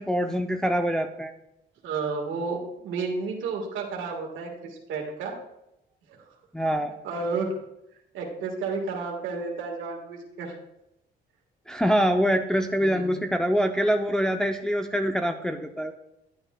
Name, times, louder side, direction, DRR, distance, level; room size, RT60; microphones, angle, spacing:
voice 1, 0.0-1.3 6.5-6.9 11.7-15.9, equal, 5° left, 5 dB, 0.5 m, -25 dB
voice 2, 1.8-5.3 6.1-6.2 7.0-7.6 8.1-10.5 12.8-13.1, right 4 dB, 85° right, -1 dB, 1.5 m, -31 dB
10.5 x 8.8 x 2.2 m, 0.86 s
cardioid pair, 90°, 20 cm